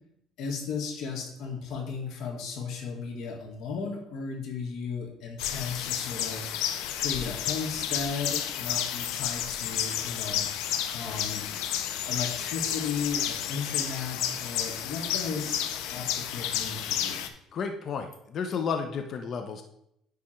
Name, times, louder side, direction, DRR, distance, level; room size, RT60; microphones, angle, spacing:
voice 1, 0.4-10.5 10.9-11.5 12.1-17.3, left 5 dB, 65° left, 3 dB, 1.7 m, -35 dB
sound 1, 5.4-17.3, left 10 dB, 85° left, 0.6 m, -31 dB
voice 2, 17.5-19.6, left 6 dB, 50° left, 6 dB, 0.7 m, -32 dB
9.7 x 3.5 x 4.4 m, 0.76 s
cardioid pair, 115°, 0 cm